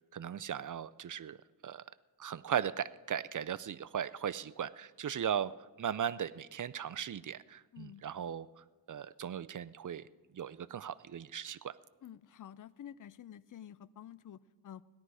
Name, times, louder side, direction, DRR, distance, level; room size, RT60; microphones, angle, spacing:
voice 1, 0.1-1.4 1.6-1.8 2.2-5.5 5.8-10.1 10.3-11.8, right 9 dB, 50° right, 18 dB, 0.5 m, -37 dB
voice 2, 7.7-8.0 12.0-14.8, left 10 dB, 50° left, 18 dB, 0.5 m, -50 dB
17.5 x 11.5 x 4.8 m, 1.2 s
wide cardioid pair, 80°, 43 cm